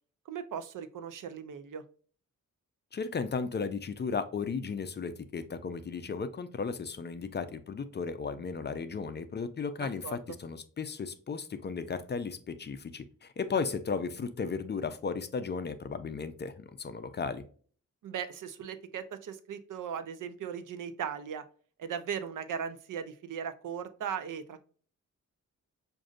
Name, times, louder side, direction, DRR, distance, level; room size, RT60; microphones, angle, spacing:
voice 1, 0.3-1.8 10.0-10.2 18.0-21.4 21.8-24.6, right 7 dB, 80° right, 10 dB, 0.6 m, -38 dB
voice 2, 2.9-17.4, left 5 dB, 35° left, 10 dB, 0.4 m, -35 dB
6.2 x 2.6 x 2.4 m, 0.43 s
wide cardioid pair, 135°, 31 cm